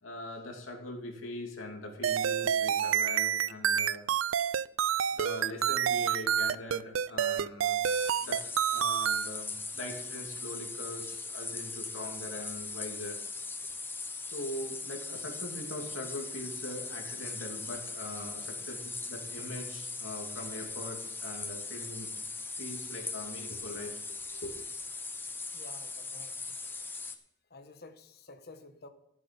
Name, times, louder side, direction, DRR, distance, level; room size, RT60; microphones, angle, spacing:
voice 1, 0.0-4.1 5.1-7.8 8.2-8.4 8.7-13.2 14.3-22.1 22.6-24.6, left 1 dB, 85° left, 1 dB, 2.8 m, -42 dB
sound 1, 2.0-9.3, right 9 dB, 80° right, 0.4 m, -28 dB
sound 2, 7.8-27.2, left 4 dB, 10° left, 0.8 m, -40 dB
voice 2, 25.5-26.6 26.9-27.0 27.5-28.9, left 2 dB, 55° left, 8 dB, 1.3 m, -51 dB
13.5 x 7.9 x 5.4 m, 0.82 s
head